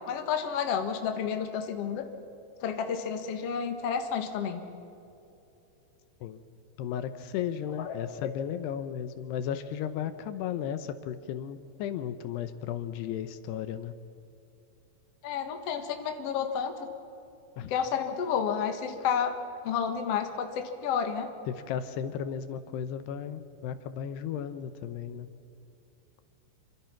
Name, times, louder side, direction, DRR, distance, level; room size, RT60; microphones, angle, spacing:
voice 1, 0.1-2.0 2.6-4.6 7.8-8.0 15.2-16.7 17.7-19.3 19.6-21.3, left 7 dB, 50° left, 6 dB, 1.9 m, -30 dB
voice 2, 6.8-13.9 17.6-17.7 21.5-25.3, left 9 dB, 80° left, 11 dB, 2.8 m, -35 dB
27.5 x 25.0 x 5.9 m, 2.8 s
omnidirectional pair, 5.0 m